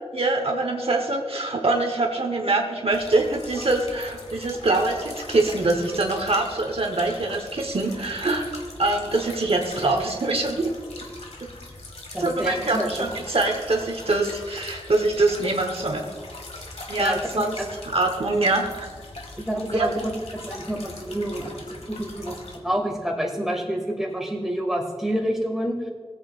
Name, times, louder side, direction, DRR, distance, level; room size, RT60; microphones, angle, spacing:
voice 1, 0.1-8.5 8.8-10.7 12.2-16.0 16.9-17.5 17.9-18.9 19.7-19.9, right 2 dB, 65° right, 3 dB, 1.0 m, -24 dB
sound 1, 2.9-22.6, left 2 dB, 90° left, 1.3 m, -41 dB
voice 2, 12.1-13.1 17.0-17.7 19.4-19.9 20.3-22.4 22.6-25.8, equal, 5° right, -1 dB, 2.1 m, -28 dB
17.0 x 8.1 x 2.4 m, 1.5 s
wide cardioid pair, 55°, 11 cm